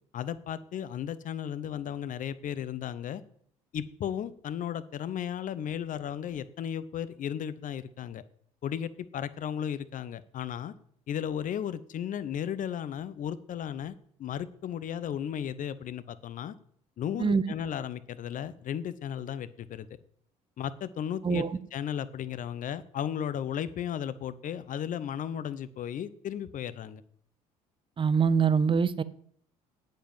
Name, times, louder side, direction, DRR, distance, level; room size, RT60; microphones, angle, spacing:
voice 1, 0.1-3.2 3.7-8.2 8.6-10.7 11.1-13.9 14.2-16.5 17.0-19.9 20.6-21.5 21.7-27.0, left 9 dB, 45° left, 14 dB, 0.8 m, -35 dB
voice 2, 28.0-29.0, right 6 dB, 30° right, 15 dB, 0.8 m, -24 dB
9.1 x 7.6 x 7.4 m, 0.63 s
hypercardioid pair, 55°, 18 cm